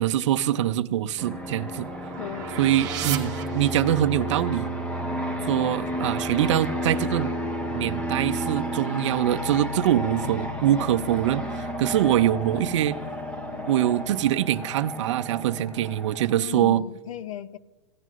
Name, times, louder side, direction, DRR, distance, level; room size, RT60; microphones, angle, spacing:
voice 1, 0.0-1.9 2.6-4.7 5.5-7.3 7.7-13.0 13.7-16.8, right 12 dB, 65° right, 14 dB, 0.5 m, -24 dB
sound 1, 0.8-4.2, right 9 dB, 20° right, 1.0 m, -35 dB
Fixed-wing aircraft airplane, 1.2-16.4, equal, 5° left, 0.6 m, -32 dB
voice 2, 2.2-2.7 12.5-12.7 16.4-17.6, left 11 dB, 75° left, 15 dB, 0.6 m, -36 dB
16.5 x 9.1 x 2.5 m, 1.1 s
supercardioid pair, 155°, 17 cm